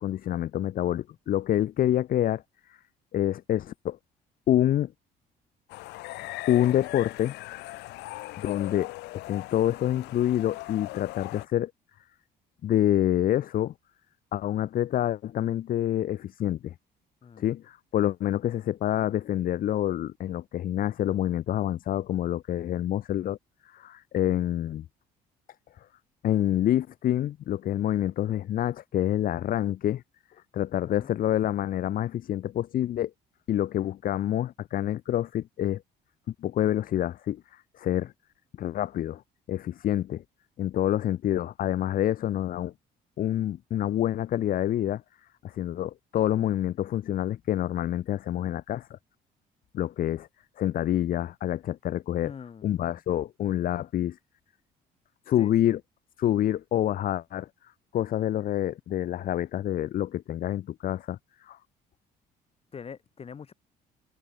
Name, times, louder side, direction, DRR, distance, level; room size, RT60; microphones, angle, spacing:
voice 1, 0.0-2.8 3.1-4.0 4.5-4.9 6.5-7.4 8.4-8.9 9.3-11.7 12.6-13.7 14.3-16.7 17.4-23.4 23.6-24.8 25.8-25.9 26.2-30.0 30.5-33.1 33.5-35.8 36.4-38.1 38.6-39.2 39.5-40.2 40.6-42.7 43.2-45.0 45.4-49.0 49.7-50.3 50.6-52.3 52.6-54.2 55.3-55.8 56.2-61.6, left 12 dB, 55° left, 1.1 m, -27 dB
sound 1, 5.7-11.5, left 20 dB, 85° left, 0.9 m, -40 dB
voice 2, 52.2-53.0 55.4-55.8 62.7-63.5, left 6 dB, 35° left, 2.8 m, -44 dB
cardioid pair, 110°, 17 cm